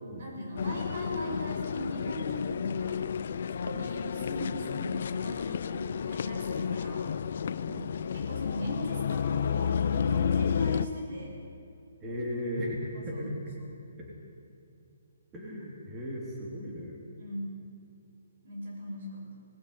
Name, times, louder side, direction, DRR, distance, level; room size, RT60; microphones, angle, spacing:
voice 1, 0.2-3.0 3.5-7.1 8.1-11.4 12.9-13.3 13.6-13.7 17.2-17.5 18.4-19.4, equal, 50° right, -1 dB, 6.6 m, -39 dB
sound 1, 0.6-10.9, left 7 dB, 55° left, 0.7 m, -31 dB
voice 2, 12.0-13.3 14.0-14.1 15.3-17.0, equal, 15° right, -3 dB, 3.4 m, -36 dB
20.0 x 16.0 x 9.7 m, 2.7 s
hypercardioid pair, 165°, 0 cm